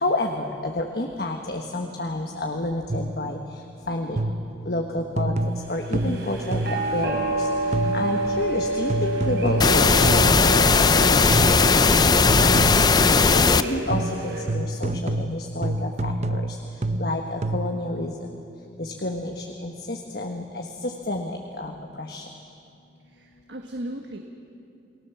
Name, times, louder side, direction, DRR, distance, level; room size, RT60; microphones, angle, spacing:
voice 1, 0.0-3.4 3.9-4.2 4.7-5.3 5.7-6.6 6.9-7.2 7.9-9.8 10.1-10.4 10.8-11.4 11.9-12.9 13.3-16.4 17.0-18.1 18.8-21.7 22.0-22.2, left 1 dB, 60° left, 3 dB, 1.5 m, -29 dB
sound 1, 2.9-3.3 4.2-4.6 5.2-7.0 7.7-8.2 8.9-11.0 11.3-11.8 12.3-13.1 13.9-17.9, right 1 dB, 40° right, 0.7 m, -27 dB
sound 2, 5.6-14.4, right 2 dB, 65° right, 5.1 m, -29 dB
sound 3, 9.6-13.6, left 4 dB, 25° left, 0.5 m, -17 dB
voice 2, 23.0-24.2, right 1 dB, 90° right, 3 dB, 1.5 m, -36 dB
29.5 x 19.5 x 7.2 m, 2.5 s
head